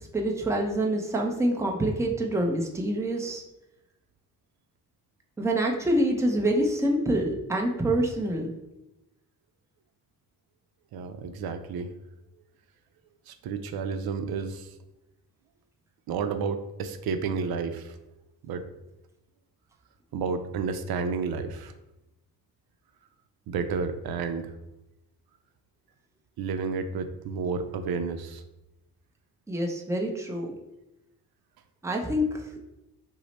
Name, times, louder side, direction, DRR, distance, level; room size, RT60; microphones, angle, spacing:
voice 1, 0.1-3.4 5.4-8.5 29.5-30.5 31.8-32.2, right 1 dB, 10° right, 0 dB, 0.6 m, -26 dB
voice 2, 10.9-11.9 13.3-14.7 16.1-17.9 18.4-18.6 20.1-21.7 23.5-24.5 26.4-28.4, right 5 dB, 85° right, 8 dB, 0.5 m, -31 dB
6.1 x 2.1 x 4.1 m, 0.95 s
wide cardioid pair, 135°, 36 cm